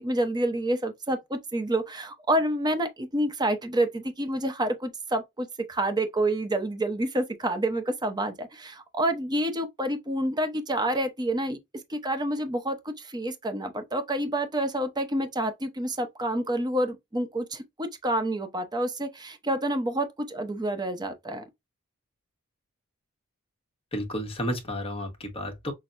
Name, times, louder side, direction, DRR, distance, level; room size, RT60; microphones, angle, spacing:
voice 1, 0.0-11.6 11.9-21.4, right 1 dB, 20° right, 0.8 m, -28 dB
voice 2, 23.9-25.7, equal, 25° left, 1.3 m, -32 dB
6.1 x 2.2 x 2.5 m
head